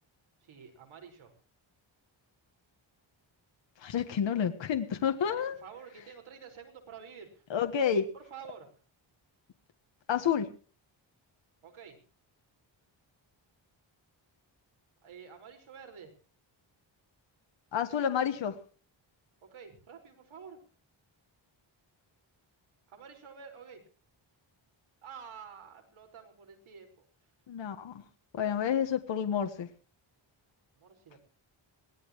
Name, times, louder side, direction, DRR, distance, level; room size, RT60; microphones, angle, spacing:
voice 1, 0.4-1.3 5.2-7.4 8.1-8.7 11.6-12.0 15.0-16.1 19.4-20.6 22.9-23.8 25.0-26.9 30.8-31.2, right 7 dB, 85° right, 4 dB, 5.3 m, -49 dB
voice 2, 3.8-5.6 7.5-8.1 10.1-10.5 17.7-18.6 27.5-28.0 28.3-29.7, left 8 dB, 65° left, 7 dB, 1.5 m, -29 dB
22.5 x 17.5 x 3.1 m, 0.40 s
wide cardioid pair, 165°, 47 cm